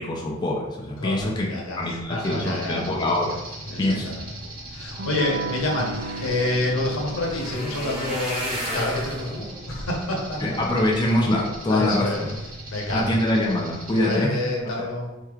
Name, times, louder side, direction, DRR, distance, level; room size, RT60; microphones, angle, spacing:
voice 1, 0.0-3.4 3.8-4.1 10.4-12.4 12.9-14.4 14.6-14.8, left 1 dB, 20° left, -2 dB, 0.4 m, -24 dB
voice 2, 1.0-2.8 3.6-3.9 4.2-4.3 4.7-6.0 6.2-10.8 11.7-12.3 12.7-13.1 14.0-15.1, left 1 dB, 90° left, -1 dB, 0.9 m, -28 dB
sound 1, 2.2-14.2, right 1 dB, 45° right, 1.0 m, -39 dB
sound 2, 4.9-5.0 5.2-11.6 12.1-12.6 13.0-13.2 13.5-13.6, equal, 5° right, 1.2 m, -35 dB
Electric guitar / Strum, 5.0-10.4, right 3 dB, 70° right, 0.5 m, -36 dB
4.4 x 3.2 x 2.4 m, 1.0 s
head